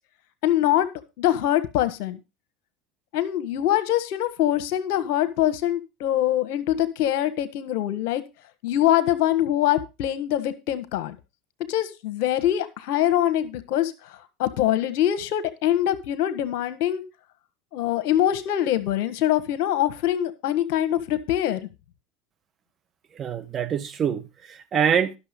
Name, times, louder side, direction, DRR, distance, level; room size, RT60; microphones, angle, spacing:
voice 1, 0.4-0.9 1.2-2.2 3.1-8.2 8.6-11.2 11.7-17.0 17.7-21.7, left 12 dB, 70° left, 1.4 m, -24 dB
voice 2, 23.1-25.2, right 8 dB, 40° right, 1.5 m, -25 dB
11.5 x 6.7 x 5.2 m
hypercardioid pair, 85°, 0 cm